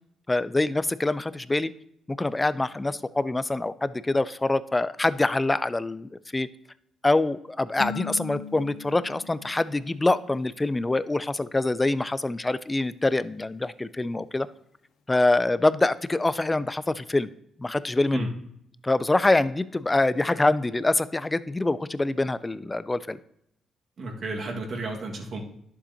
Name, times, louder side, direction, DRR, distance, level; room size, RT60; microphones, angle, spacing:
voice 1, 0.3-1.7 2.1-6.5 7.0-14.5 15.1-17.3 17.6-18.3 18.8-23.2, left 2 dB, 15° left, 16 dB, 0.4 m, -25 dB
sound 1, 7.8-10.4, left 6 dB, 65° left, 0.6 m, -39 dB
voice 2, 24.0-25.4, right 2 dB, 50° right, 1 dB, 1.7 m, -32 dB
11.0 x 7.1 x 2.8 m, 0.75 s
cardioid pair, 90°, 0 cm